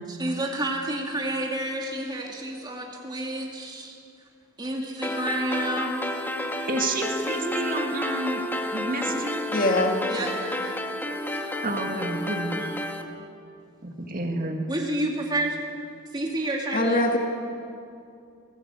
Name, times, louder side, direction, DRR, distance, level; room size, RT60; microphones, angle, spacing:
voice 1, 0.1-4.0 4.6-6.0 10.1-10.8 14.7-15.7 16.1-17.0, right 1 dB, 20° right, -1 dB, 2.5 m, -30 dB
sound 1, 5.0-13.0, left 1 dB, 10° left, 1.5 m, -30 dB
voice 2, 6.7-8.4 8.7-9.4 11.6-12.7 13.8-14.6, right 2 dB, 40° right, 3 dB, 2.2 m, -30 dB
voice 3, 9.5-10.0 16.7-17.2, left 2 dB, 40° left, 1 dB, 1.9 m, -22 dB
22.0 x 18.0 x 8.4 m, 2.5 s
head